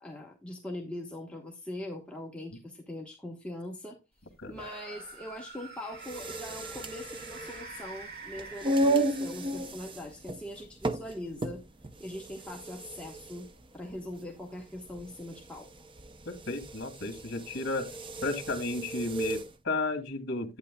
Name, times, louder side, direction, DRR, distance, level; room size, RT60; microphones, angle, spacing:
voice 1, 0.0-4.0 4.5-11.6 12.0-13.5 13.7-15.7, left 1 dB, 5° left, 1.2 m, -41 dB
sound 1, 4.5-9.7, right 3 dB, 50° right, 2.2 m, -46 dB
sound 2, 5.9-19.5, right 1 dB, 25° right, 0.6 m, -34 dB
voice 2, 16.3-17.9 18.2-20.6, left 2 dB, 60° left, 2.1 m, -33 dB
11.0 x 9.1 x 2.2 m
head